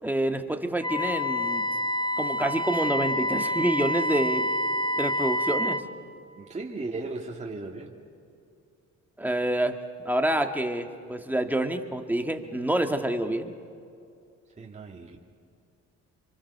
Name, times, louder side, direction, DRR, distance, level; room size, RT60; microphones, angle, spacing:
voice 1, 0.0-1.6 2.2-4.5 5.0-5.8 9.2-9.8 10.0-13.5, right 1 dB, 5° right, 4 dB, 1.8 m, -27 dB
Wind instrument woodwind instrument, 0.8-5.9, left 1 dB, 15° left, 1.4 m, -28 dB
voice 2, 6.4-7.9 14.6-15.2, right 3 dB, 25° right, -2 dB, 2.3 m, -36 dB
26.5 x 24.5 x 6.8 m, 2.5 s
cardioid pair, 90°, 30 cm